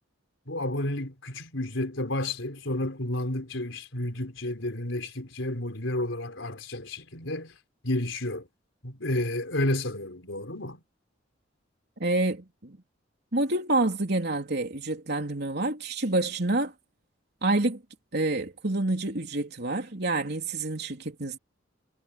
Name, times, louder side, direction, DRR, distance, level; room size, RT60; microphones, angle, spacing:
voice 1, 0.5-7.6 7.8-8.5 8.8-10.8, left 1 dB, 75° left, 4.6 m, -31 dB
voice 2, 12.0-12.8 13.3-16.7 17.4-17.8 18.1-21.4, right 2 dB, 55° right, 3.6 m, -28 dB
head